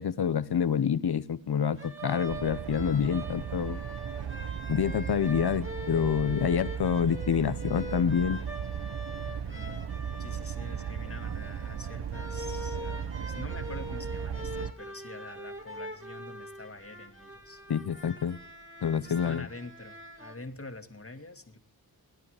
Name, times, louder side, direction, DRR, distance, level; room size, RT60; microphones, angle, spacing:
voice 1, 0.0-3.8 4.7-8.4 17.7-18.4 18.8-19.5, left 7 dB, 80° left, 0.9 m, -27 dB
sound 1, 1.8-20.3, right 1 dB, 30° right, 2.8 m, -43 dB
sound 2, 2.3-14.7, right 8 dB, 85° right, 0.8 m, -36 dB
voice 2, 9.2-9.8 10.2-17.6 19.0-21.6, left 2 dB, 35° left, 2.0 m, -45 dB
20.0 x 9.7 x 4.9 m
cardioid pair, 55°, 38 cm